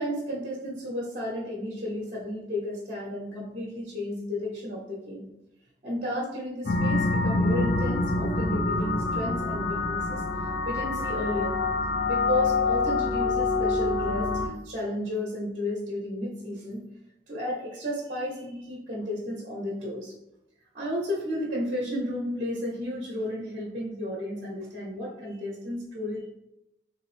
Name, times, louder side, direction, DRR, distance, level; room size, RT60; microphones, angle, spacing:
voice 1, 0.0-5.3 5.8-10.2 10.6-11.5 12.1-16.8 17.3-20.1 20.7-26.3, left 1 dB, 45° right, -5 dB, 0.9 m, -33 dB
sound 1, 6.7-14.5, left 3 dB, 50° left, 0.5 m, -26 dB
3.9 x 2.7 x 3.3 m, 0.86 s
head